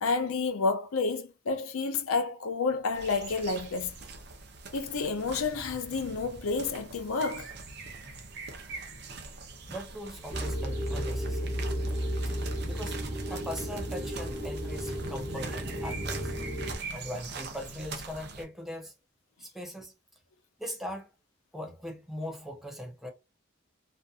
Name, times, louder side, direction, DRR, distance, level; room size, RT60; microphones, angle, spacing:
voice 1, 0.0-3.9 4.7-7.5, left 4 dB, 90° left, 0.5 m, -30 dB
sound 1, 2.9-18.4, right 3 dB, 50° right, 0.6 m, -42 dB
voice 2, 9.7-11.5 12.7-13.0 13.3-16.3 16.9-18.9 19.4-19.9 20.6-21.1 21.5-23.1, equal, ahead, 0.5 m, -40 dB
sound 2, 10.3-16.8, equal, 20° right, 0.8 m, -33 dB
2.6 x 2.4 x 2.3 m
head